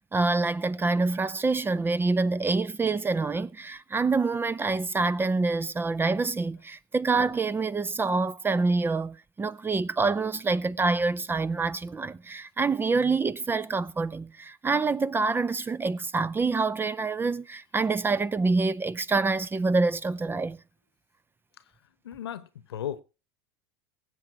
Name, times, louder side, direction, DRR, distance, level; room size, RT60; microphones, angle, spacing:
voice 1, 0.1-20.6, right 3 dB, 15° right, 0.6 m, -26 dB
voice 2, 22.0-23.0, left 10 dB, 85° left, 1.1 m, -35 dB
18.0 x 7.7 x 4.7 m
hypercardioid pair, 85°, 13 cm